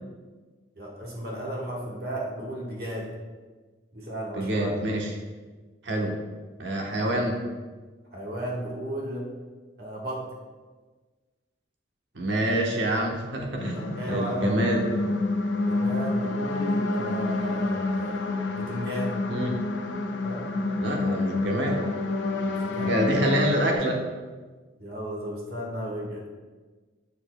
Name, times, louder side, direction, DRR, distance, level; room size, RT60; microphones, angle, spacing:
voice 1, 0.8-3.1 3.9-4.9 8.1-9.3 9.8-10.2 13.7-14.6 15.6-19.1 20.2-20.4 22.6-23.0 24.8-26.3, right 1 dB, 55° right, -3 dB, 1.4 m, -34 dB
voice 2, 4.3-5.1 5.8-6.2 6.6-7.4 12.1-14.9 19.3-19.6 20.8-21.8 22.9-24.0, right 1 dB, 85° right, 0 dB, 1.0 m, -26 dB
sound 1, 13.6-23.8, left 2 dB, 85° left, 0.6 m, -28 dB
7.1 x 6.9 x 2.2 m, 1.3 s
head